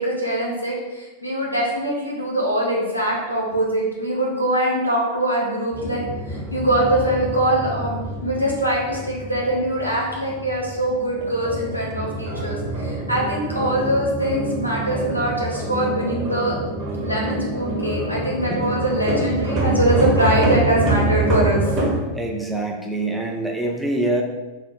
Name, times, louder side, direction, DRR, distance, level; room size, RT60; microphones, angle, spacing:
voice 1, 0.0-6.0 6.3-16.5 17.0-21.8, right 1 dB, 85° left, -3 dB, 0.7 m, -23 dB
sound 1, 5.7-22.0, right 2 dB, 30° right, 0.9 m, -26 dB
voice 2, 22.1-24.2, right 2 dB, ahead, 0 dB, 0.4 m, -25 dB
3.7 x 2.0 x 2.9 m, 1.2 s
figure-of-eight pair, 90°, 0 cm